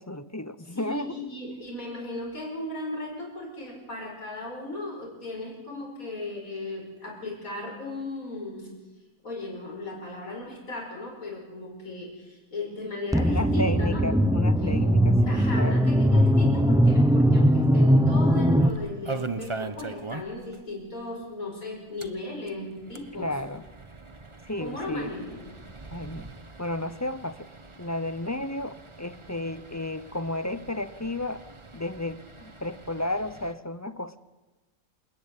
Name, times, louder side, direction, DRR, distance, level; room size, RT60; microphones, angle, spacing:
voice 1, 0.0-1.2 13.2-15.8 23.2-23.6 24.4-25.1 25.9-26.3 26.6-27.5 27.8-31.4 31.7-34.2, left 1 dB, 15° left, 13 dB, 0.6 m, -33 dB
voice 2, 0.7-8.7 9.2-14.3 14.6-14.8 15.2-23.3 24.6-25.4, left 2 dB, 75° left, -1 dB, 6.0 m, -36 dB
sound 1, 13.1-18.7, equal, 5° right, 1.0 m, -20 dB
sound 2, 18.6-20.6 20.8-20.9 21.2-21.3 21.9-33.5, right 3 dB, 20° right, 1.2 m, -41 dB
28.0 x 16.0 x 10.0 m, 1.2 s
omnidirectional pair, 1.5 m